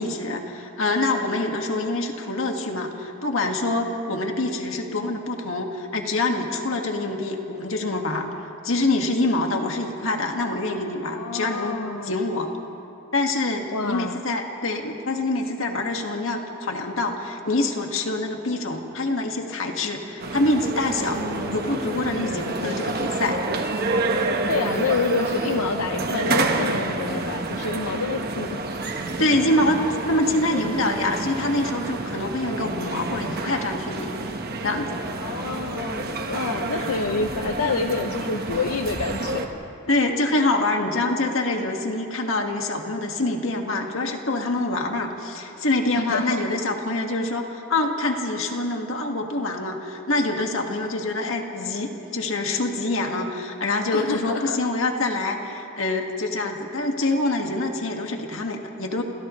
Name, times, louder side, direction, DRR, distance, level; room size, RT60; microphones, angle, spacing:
voice 1, 0.0-8.3 8.6-11.7 12.0-12.5 13.1-21.3 21.5-23.4 29.2-34.2 34.6-35.0 36.7-36.8 39.9-59.0, left 2 dB, 65° left, 2 dB, 1.9 m, -25 dB
voice 2, 11.0-12.1 13.7-14.2 21.1-21.7 24.5-28.6 35.2-39.5 45.9-46.4 53.9-54.6, left 4 dB, 90° left, 6 dB, 0.7 m, -28 dB
sound 1, 20.2-39.5, right 2 dB, 45° right, 1.3 m, -28 dB
28.5 x 28.0 x 3.2 m, 2.9 s
head